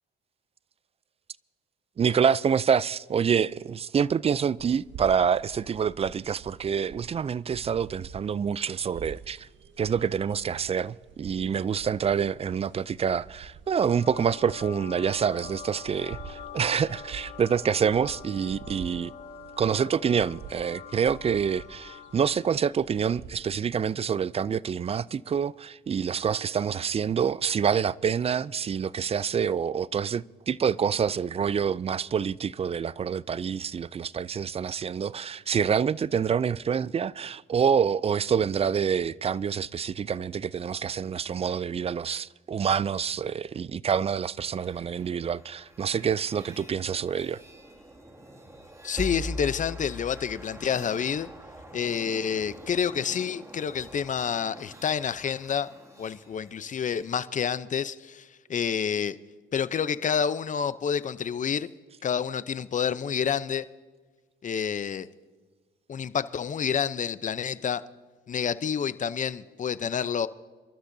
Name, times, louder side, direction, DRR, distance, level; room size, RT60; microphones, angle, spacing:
voice 1, 2.0-9.5 9.8-19.1 19.6-47.4, right 7 dB, 30° right, 0.3 m, -27 dB
sound 1, 4.6-23.7, right 6 dB, 70° right, 1.0 m, -48 dB
sound 2, 13.7-22.5, left 7 dB, 60° left, 2.5 m, -45 dB
sound 3, 44.3-57.1, equal, 15° right, 2.2 m, -43 dB
voice 2, 48.8-51.3 51.7-55.7 56.0-59.2 59.5-61.7 62.0-63.6 64.4-65.1 65.9-67.8 68.3-70.3, left 7 dB, 40° left, 0.6 m, -28 dB
27.5 x 13.0 x 2.7 m
cardioid pair, 90°, 20 cm